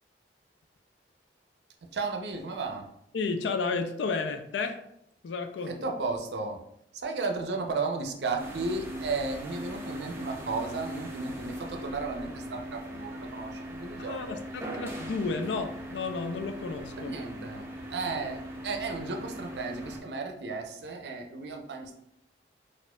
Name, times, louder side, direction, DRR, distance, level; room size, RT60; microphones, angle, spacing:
voice 1, 1.9-2.9 5.7-6.6 6.9-14.4 17.0-22.0, right 3 dB, 70° right, 4 dB, 0.5 m, -34 dB
voice 2, 3.1-4.8 5.2-5.8 14.0-17.1, left 4 dB, 85° left, 8 dB, 0.4 m, -32 dB
sound 1, 8.4-20.0, equal, 15° right, 0.5 m, -40 dB
4.2 x 2.4 x 2.2 m, 0.75 s
head